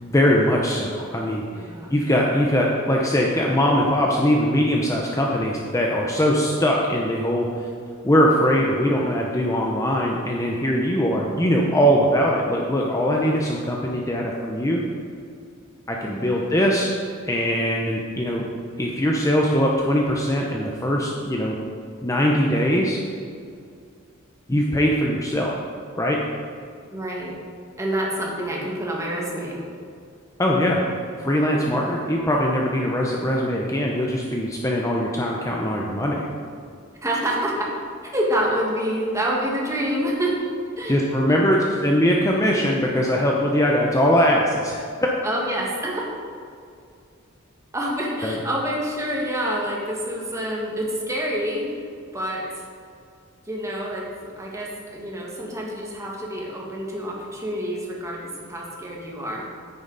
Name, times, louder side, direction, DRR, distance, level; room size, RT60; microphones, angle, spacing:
voice 1, 0.0-1.6 1.9-7.7 8.0-14.8 15.9-16.9 17.2-18.5 18.8-21.6 22.0-23.0 24.5-25.5 26.0-26.2 30.4-30.8 31.2-36.3 40.9-44.8 48.2-48.3, equal, 15° left, -1 dB, 0.7 m, -21 dB
voice 2, 1.5-2.0 11.3-11.4 16.0-16.5 26.9-27.4 27.8-29.6 31.7-31.9 37.0-37.7 38.0-40.4 40.8-41.9 45.2-46.0 47.7-51.7 52.1-52.7 53.5-54.1 54.4-59.5, right 1 dB, 15° right, -3 dB, 1.7 m, -27 dB
9.6 x 9.5 x 4.0 m, 2.3 s
head